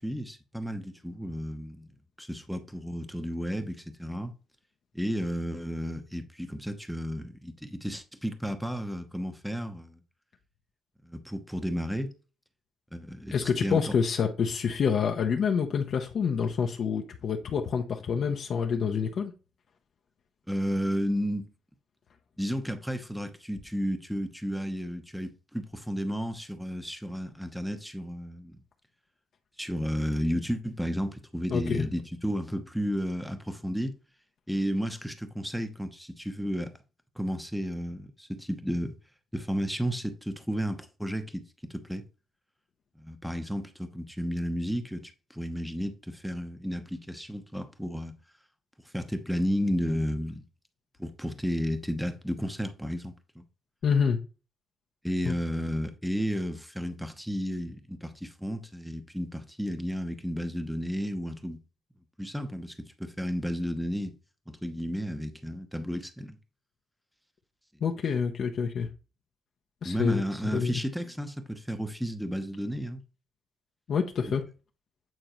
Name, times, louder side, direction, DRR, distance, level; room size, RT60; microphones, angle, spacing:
voice 1, 0.0-4.3 4.9-10.0 11.0-12.1 12.9-13.9 20.5-21.5 22.4-28.5 29.6-33.9 34.5-36.7 37.2-39.0 39.3-42.0 43.0-48.2 48.8-50.4 51.0-53.4 55.0-61.6 62.2-64.1 64.5-66.4 69.8-73.0, equal, ahead, 0.9 m, -32 dB
voice 2, 13.3-19.3 31.5-31.8 53.8-54.2 55.2-55.3 67.8-68.9 69.8-70.8 73.9-74.4, left 6 dB, 60° left, 0.8 m, -27 dB
9.0 x 3.8 x 3.0 m
cardioid pair, 90°, 0 cm